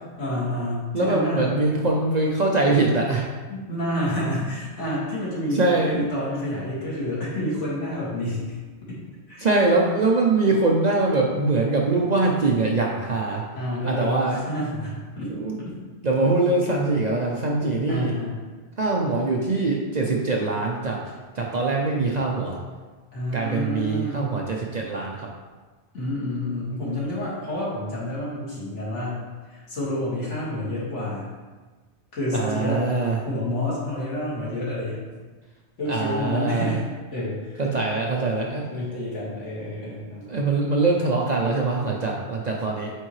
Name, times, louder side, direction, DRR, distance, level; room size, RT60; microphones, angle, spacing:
voice 1, 0.2-1.6 3.5-8.6 8.9-9.0 9.3-9.5 13.5-15.8 17.9-18.4 23.1-24.3 25.9-31.3 32.1-35.1 35.8-37.8 38.7-40.3, left 1 dB, 75° left, -7 dB, 2.3 m, -29 dB
voice 2, 0.9-3.3 5.6-6.0 9.4-13.4 13.9-14.4 15.3-15.6 16.0-18.2 18.8-21.0 21.3-22.6 23.3-25.3 32.3-33.2 35.9-36.7 37.6-38.7 40.3-42.9, right 3 dB, 45° right, -1 dB, 0.6 m, -23 dB
9.0 x 3.7 x 3.1 m, 1.3 s
omnidirectional pair, 1.2 m